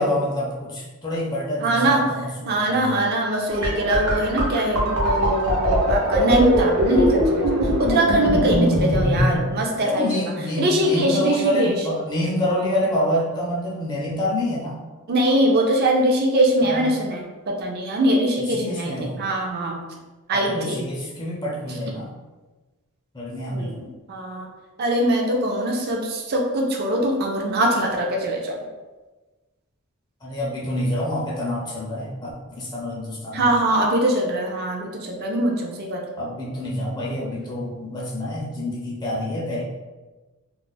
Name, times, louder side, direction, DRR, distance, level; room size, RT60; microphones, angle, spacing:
voice 1, 0.0-3.0 9.8-14.8 16.6-17.0 18.4-19.2 20.3-22.1 23.1-23.9 30.2-33.6 36.2-39.6, left 1 dB, 20° left, -5 dB, 0.4 m, -27 dB
voice 2, 1.6-2.1 2.5-10.2 10.6-11.7 15.1-19.8 20.3-20.9 23.5-23.7 24.1-24.5 24.8-28.6 33.3-36.0, right 1 dB, 45° right, 0 dB, 0.4 m, -22 dB
sound 1, 3.5-9.4, equal, 80° right, 0.8 m, -21 dB
2.4 x 2.0 x 3.8 m, 1.2 s
head